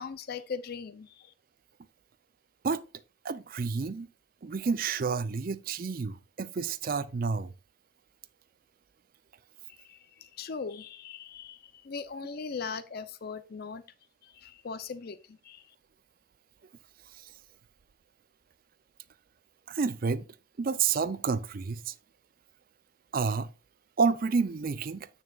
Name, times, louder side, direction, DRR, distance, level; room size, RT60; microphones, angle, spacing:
voice 1, 0.0-1.3 9.7-13.8 14.2-15.7, left 5 dB, 50° left, 0.5 m, -40 dB
voice 2, 3.2-4.1 4.4-7.5 17.2-17.3 19.7-20.2 20.6-21.9 23.1-23.5 24.0-25.1, right 5 dB, 45° right, 0.4 m, -29 dB
8.9 x 6.1 x 2.3 m
head